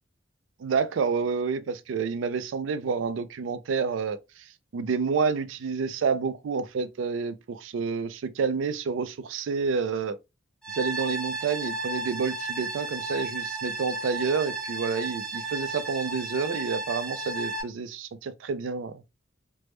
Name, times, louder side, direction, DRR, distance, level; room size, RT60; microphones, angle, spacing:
voice 1, 0.6-4.2 4.7-10.2 10.7-19.0, right 5 dB, 85° right, 0.4 m, -29 dB
sound 1, 10.6-17.6, right 2 dB, 5° left, 0.7 m, -33 dB
3.3 x 2.0 x 3.1 m
head